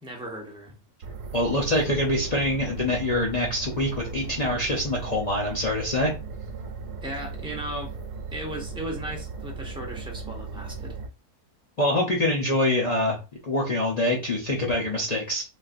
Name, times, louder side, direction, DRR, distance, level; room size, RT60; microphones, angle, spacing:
voice 1, 0.0-0.8 7.0-8.0 8.3-11.0, right 1 dB, 5° right, 0.4 m, -36 dB
sound 1, 1.0-11.1, right 4 dB, 85° right, 1.1 m, -37 dB
voice 2, 1.3-6.1 11.8-13.2 13.4-15.5, left 1 dB, 50° left, 0.4 m, -25 dB
3.8 x 2.5 x 2.4 m
omnidirectional pair, 1.6 m